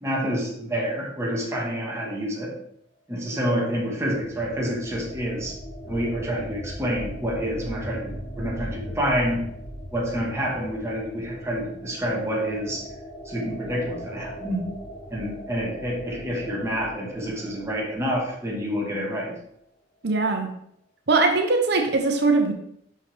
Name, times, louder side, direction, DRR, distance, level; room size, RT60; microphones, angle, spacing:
voice 1, 0.0-2.5 3.1-5.5 5.9-9.4 9.9-12.9 13.2-14.7 15.1-19.3, equal, 15° right, -3 dB, 1.5 m, -28 dB
sound 1, 4.0-18.6, equal, 35° left, 1.0 m, -39 dB
voice 2, 20.0-20.5 21.1-22.5, right 3 dB, 65° right, 4 dB, 0.8 m, -21 dB
5.9 x 5.6 x 3.4 m, 0.71 s
head